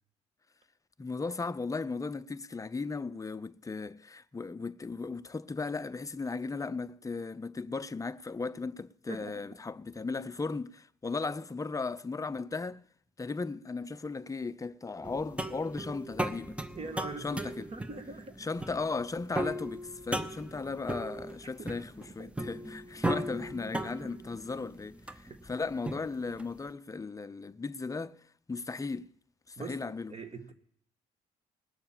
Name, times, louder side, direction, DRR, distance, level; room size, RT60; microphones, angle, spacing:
voice 1, 1.0-12.8 13.2-16.6 17.2-17.7 18.4-28.2 28.5-29.1 29.5-30.1, left 4 dB, 20° left, 0.6 m, -36 dB
voice 2, 9.1-9.4 16.7-18.4 21.6-21.7 22.2-22.3 25.3-25.4 29.6-29.8 30.1-30.5, right 3 dB, 35° right, 1.8 m, -42 dB
sound 1, 15.0-26.6, right 1 dB, 5° right, 0.9 m, -37 dB
19.0 x 6.8 x 7.3 m
hypercardioid pair, 55°, 18 cm